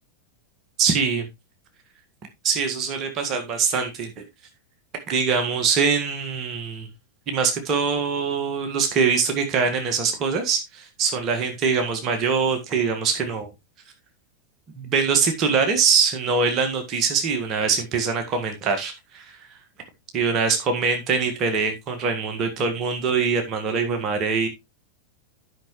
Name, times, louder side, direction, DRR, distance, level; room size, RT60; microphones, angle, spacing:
voice 1, 0.8-1.3 2.4-4.2 5.1-6.9 7.3-13.5 14.7-19.4 20.1-24.5, right 5 dB, 35° right, 1.7 m, -23 dB
11.5 x 5.9 x 3.2 m
figure-of-eight pair, 90°, 0 cm